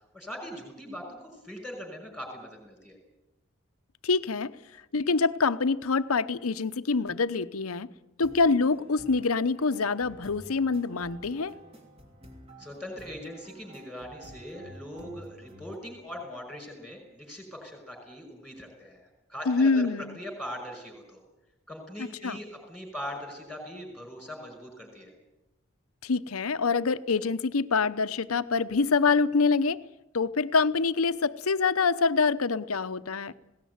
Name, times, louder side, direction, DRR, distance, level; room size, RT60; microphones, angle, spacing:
voice 1, 0.1-3.0 12.6-19.9 20.1-21.2 21.7-25.1, equal, ahead, 5.6 m, -41 dB
voice 2, 4.0-4.5 4.9-7.9 8.2-11.5 19.5-20.2 22.2-22.4 26.0-29.8 30.1-33.3, left 4 dB, 85° left, 0.8 m, -25 dB
sound 1, 8.2-15.8, equal, 30° right, 3.1 m, -50 dB
19.5 x 17.5 x 9.5 m
head